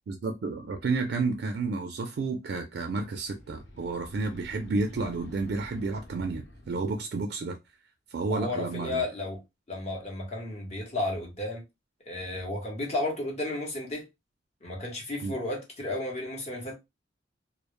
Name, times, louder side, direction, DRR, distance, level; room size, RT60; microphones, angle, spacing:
voice 1, 0.1-7.6 8.1-9.1 15.2-15.4, right 3 dB, 60° right, 0.3 m, -31 dB
sound 1, 3.1-7.0, left 1 dB, 65° left, 0.6 m, -49 dB
voice 2, 8.3-9.4 9.7-11.6 12.1-14.0 14.6-16.7, left 2 dB, 35° left, 0.8 m, -33 dB
2.1 x 2.0 x 2.9 m
head